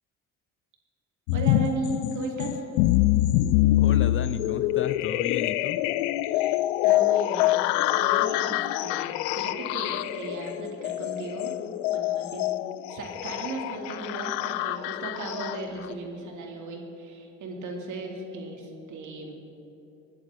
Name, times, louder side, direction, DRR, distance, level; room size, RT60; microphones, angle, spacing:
sound 1, 1.3-15.9, left 15 dB, 80° left, 0.5 m, -25 dB
voice 1, 1.3-2.6 6.3-6.6 6.8-11.6 11.9-12.5 12.9-19.3, right 2 dB, 60° right, 1 dB, 2.7 m, -36 dB
voice 2, 3.8-5.8, left 8 dB, 35° left, 13 dB, 0.6 m, -33 dB
20.5 x 10.5 x 3.7 m, 3.0 s
hypercardioid pair, 65°, 34 cm